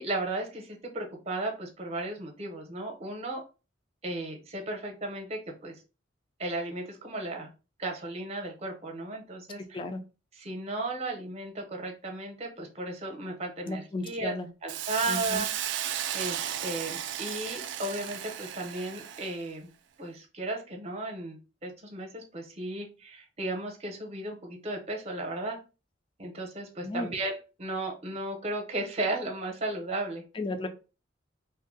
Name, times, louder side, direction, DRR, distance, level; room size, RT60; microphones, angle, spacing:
voice 1, 0.0-3.4 4.0-5.8 6.4-7.5 7.8-9.8 10.3-14.3 14.6-15.5 16.1-19.7 20.0-25.6 26.2-30.2, right 2 dB, 35° right, 2 dB, 0.8 m, -35 dB
voice 2, 13.7-14.5 15.1-15.4 26.8-27.1 30.4-30.7, left 2 dB, 25° left, 6 dB, 0.4 m, -34 dB
Hiss, 14.7-19.4, right 10 dB, 65° right, 0.3 m, -34 dB
2.6 x 2.1 x 3.8 m, 0.32 s
head